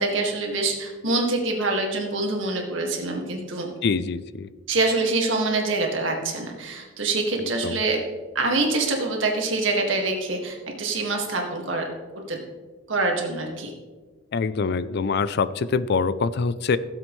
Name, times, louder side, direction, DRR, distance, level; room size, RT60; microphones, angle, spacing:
voice 1, 0.0-3.7 4.7-8.0 8.4-11.9 12.3-12.4 12.9-13.7, right 3 dB, 80° right, 1 dB, 1.9 m, -25 dB
voice 2, 3.8-4.5 7.6-7.8 14.3-16.8, left 5 dB, 55° left, 15 dB, 0.4 m, -24 dB
16.5 x 7.7 x 3.2 m, 1.4 s
head